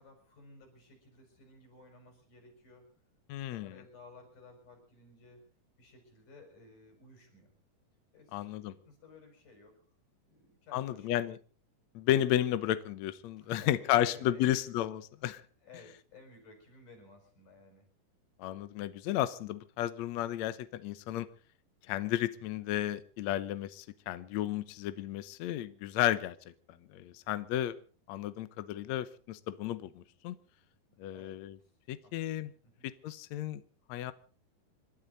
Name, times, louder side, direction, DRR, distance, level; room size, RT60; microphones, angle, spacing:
voice 1, 0.0-2.9 3.4-5.5 5.8-7.5 8.1-9.8 10.3-11.3 13.4-14.6 15.6-17.9 30.9-31.7 32.0-32.5 32.8-32.9, left 3 dB, 60° left, 4 dB, 7.3 m, -56 dB
voice 2, 3.3-3.7 8.3-8.7 10.7-11.4 11.9-15.4 18.4-21.3 21.9-26.3 26.9-27.8 28.1-30.4 31.0-31.6 31.9-32.5 32.8-33.6 33.9-34.1, left 13 dB, 75° left, 13 dB, 1.6 m, -33 dB
28.5 x 12.5 x 4.0 m, 0.40 s
omnidirectional pair, 4.3 m